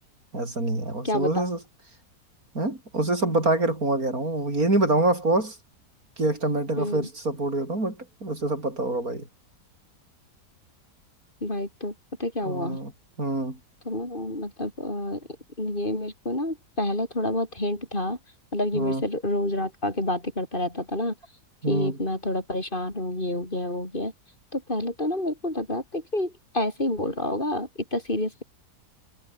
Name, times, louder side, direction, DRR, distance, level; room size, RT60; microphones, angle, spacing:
voice 1, 0.3-1.6 2.5-5.6 6.2-9.3 12.4-12.9 13.2-13.6 18.7-19.1 21.6-22.0, right 2 dB, 60° right, 6.8 m, -26 dB
voice 2, 1.0-1.5 6.8-7.1 11.4-11.9 12.2-12.8 13.8-15.2 15.6-18.2 18.5-21.1 21.7-24.1 24.5-28.4, left 1 dB, 30° left, 5.2 m, -28 dB
omnidirectional pair, 1.8 m